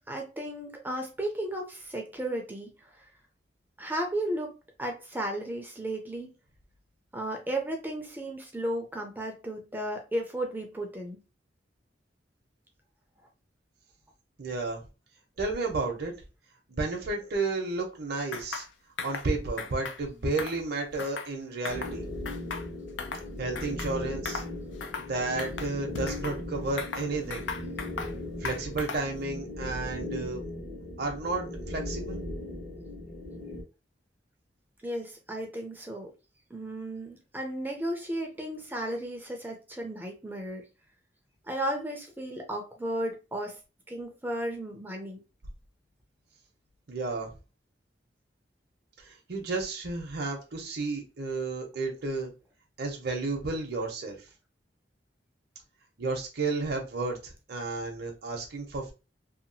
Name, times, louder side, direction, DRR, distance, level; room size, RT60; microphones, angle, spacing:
voice 1, 0.1-3.1 3.8-6.4 7.1-11.2 34.8-36.1 36.5-40.6 41.5-43.6 43.9-45.2, right 1 dB, 10° right, 0.5 m, -34 dB
voice 2, 14.4-14.8 15.4-16.1 16.7-18.6 19.0-22.0 23.4-24.4 25.0-27.5 28.4-30.5 31.0-32.2 46.9-47.3 49.3-52.3 52.8-54.2 56.0-58.9, right 3 dB, 60° right, 0.7 m, -32 dB
sound 1, 18.3-18.7 19.0-19.3 19.6-20.0 20.3-21.3 21.6-22.0 22.3-23.3 23.5-23.9 24.2-24.5 24.8-25.1 25.4-26.4 26.8-28.1 28.4-29.1, left 5 dB, 80° left, 0.4 m, -37 dB
sound 2, 21.7-33.6, left 1 dB, 50° left, 1.2 m, -38 dB
2.8 x 2.3 x 2.6 m
head